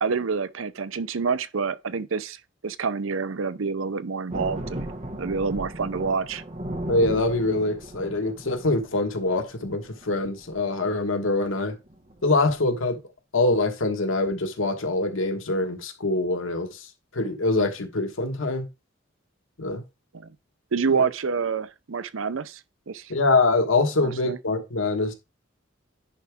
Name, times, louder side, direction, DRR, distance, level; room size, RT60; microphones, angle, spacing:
voice 1, 0.0-2.4 2.6-4.9 5.2-6.4 20.1-20.3 20.7-22.6 22.9-23.1 24.0-24.4, right 5 dB, 90° right, 0.6 m, -27 dB
sound 1, 4.3-10.1 10.4-10.6 11.0-11.2 11.5-11.6 11.9-12.5, right 1 dB, 35° right, 1.6 m, -36 dB
voice 2, 6.9-11.7 12.2-13.0 13.3-16.8 17.1-18.6 19.6-19.8 21.0-21.1 23.1-25.1, left 2 dB, 85° left, 1.4 m, -24 dB
10.0 x 4.8 x 3.5 m
head